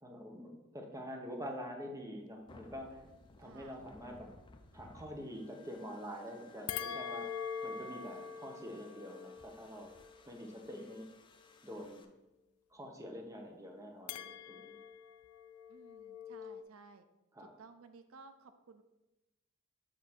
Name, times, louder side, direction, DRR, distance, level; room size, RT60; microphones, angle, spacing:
voice 1, 0.0-3.0 3.4-4.3 4.7-7.3 7.6-9.9 10.3-11.1 11.6-12.0 12.7-14.8 17.3-17.5, equal, 15° right, 2 dB, 0.8 m, -46 dB
sound 1, 2.5-12.0, left 3 dB, 25° left, 0.4 m, -60 dB
voice 2, 3.4-3.8 15.7-17.0 17.4-18.8, right 4 dB, 75° right, 9 dB, 0.5 m, -57 dB
sound 2, 6.7-11.2 14.1-16.6, left 7 dB, 85° left, 0.3 m, -44 dB
7.5 x 2.7 x 5.9 m, 1.0 s
head